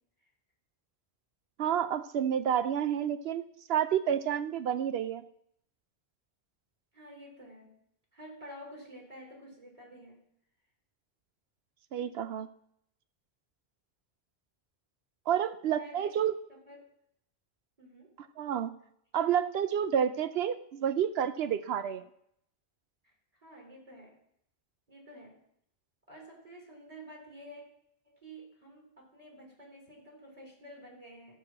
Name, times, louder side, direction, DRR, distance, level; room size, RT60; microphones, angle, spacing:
voice 1, 1.6-3.4 3.7-5.2 11.9-12.5 15.3-16.3 18.4-18.7 19.1-22.0, right 9 dB, 80° right, 12 dB, 0.8 m, -29 dB
voice 2, 6.9-7.7 8.1-10.2 12.0-12.2 15.8-16.2 16.5-16.9 17.8-18.1 23.4-24.2 24.9-25.4 26.1-27.6 28.0-31.4, equal, 35° right, -2 dB, 3.3 m, -50 dB
12.5 x 4.8 x 7.3 m, 0.73 s
omnidirectional pair, 1.1 m